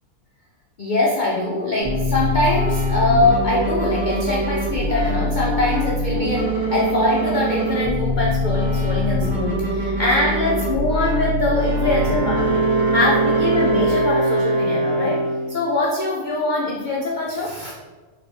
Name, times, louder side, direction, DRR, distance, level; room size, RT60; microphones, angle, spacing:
voice 1, 0.8-17.7, left 2 dB, 75° left, -3 dB, 0.4 m, -23 dB
sound 1, 1.8-13.8, equal, 50° right, 1.4 m, -23 dB
Wind instrument woodwind instrument, 11.8-15.5, right 2 dB, 70° right, 1.4 m, -22 dB
4.3 x 3.2 x 3.2 m, 1.3 s
omnidirectional pair, 1.5 m